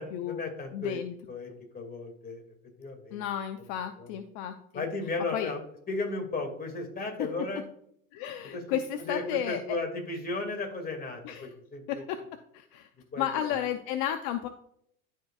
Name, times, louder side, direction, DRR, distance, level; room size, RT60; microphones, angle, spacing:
voice 1, 0.0-1.0 1.3-3.2 4.0-4.2 4.7-5.6 5.9-7.6 8.4-8.6 9.0-12.0 13.1-13.5, left 3 dB, 20° left, 3 dB, 2.3 m, -35 dB
voice 2, 0.7-1.1 3.1-4.8 5.3-5.5 8.1-9.8 11.2-11.5 11.9-12.2 12.5-12.9 13.2-14.5, left 10 dB, 60° left, 8 dB, 0.7 m, -33 dB
13.0 x 4.6 x 2.4 m, 0.70 s
hypercardioid pair, 95°, 41 cm